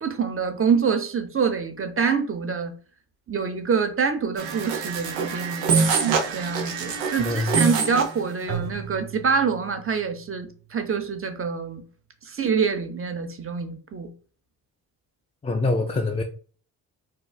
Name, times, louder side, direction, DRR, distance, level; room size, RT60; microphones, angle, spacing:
voice 1, 0.0-2.7 3.3-5.8 6.3-11.8 12.2-14.1, right 6 dB, 30° right, 0.7 m, -26 dB
sound 1, 4.4-8.2, right 5 dB, 85° right, 0.6 m, -25 dB
voice 2, 7.2-7.6 15.4-16.2, left 2 dB, 15° left, 0.3 m, -24 dB
Keyboard (musical), 8.5-10.7, right 6 dB, 65° right, 1.2 m, -37 dB
3.8 x 2.4 x 2.3 m
hypercardioid pair, 45°, 45 cm